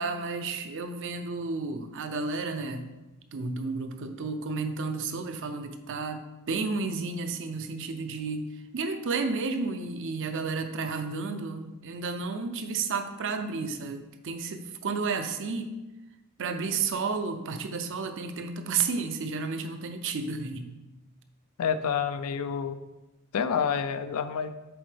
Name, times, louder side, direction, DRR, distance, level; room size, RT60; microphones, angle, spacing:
voice 1, 0.0-2.9 3.3-8.5 8.7-15.7 16.4-20.7, right 4 dB, 60° right, 7 dB, 0.5 m, -32 dB
voice 2, 21.6-22.8 23.3-24.5, left 7 dB, 90° left, 11 dB, 0.4 m, -28 dB
7.8 x 3.7 x 3.4 m, 1.1 s
head